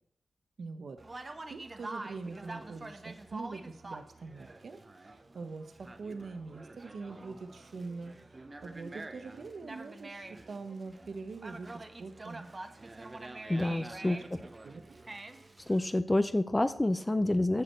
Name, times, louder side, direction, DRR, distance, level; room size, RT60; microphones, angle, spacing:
voice 1, 0.6-8.2 8.6-12.5 14.0-14.1 14.6-15.0, right 4 dB, 70° right, 8 dB, 0.9 m, -44 dB
Conversation, 1.0-16.0, right 2 dB, 30° right, 0.8 m, -46 dB
voice 2, 13.5-14.2 15.7-17.6, left 1 dB, 20° left, 12 dB, 0.5 m, -28 dB
14.0 x 5.0 x 4.4 m, 0.70 s
cardioid pair, 75°, 0 cm